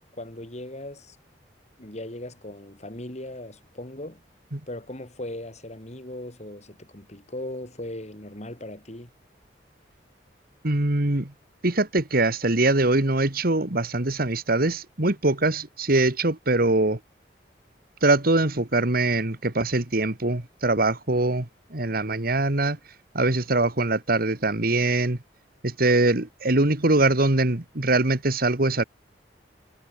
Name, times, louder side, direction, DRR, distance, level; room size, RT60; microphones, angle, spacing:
voice 1, 0.1-1.2 1.8-4.2 4.7-9.1, left 1 dB, 40° left, 4.1 m, -38 dB
voice 2, 10.6-11.3 11.6-17.0 18.0-22.8 23.1-25.2 25.6-28.8, right 2 dB, 55° right, 2.0 m, -23 dB
head